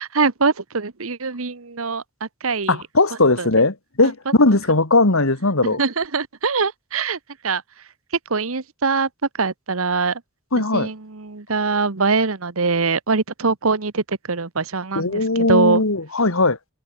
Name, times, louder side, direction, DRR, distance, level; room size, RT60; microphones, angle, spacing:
voice 1, 0.0-2.8 3.4-3.5 4.0-4.1 5.8-7.9 8.3-10.2 10.6-15.8, right 4 dB, 75° right, 1.2 m, -23 dB
voice 2, 2.7-5.8 10.5-10.9 15.0-16.6, left 2 dB, 70° left, 2.3 m, -18 dB
head